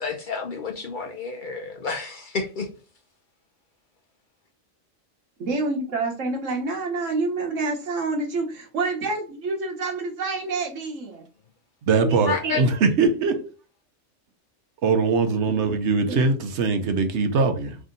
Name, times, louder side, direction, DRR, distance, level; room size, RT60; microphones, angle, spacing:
voice 1, 0.0-2.7 12.3-12.6, left 4 dB, 55° left, 0.6 m, -30 dB
voice 2, 5.4-11.2 11.9-12.6 16.1-16.2, right 3 dB, 85° right, 1.4 m, -28 dB
voice 3, 11.9-13.4 14.8-17.8, right 4 dB, 70° right, 1.0 m, -21 dB
3.4 x 2.7 x 3.7 m
omnidirectional pair, 1.3 m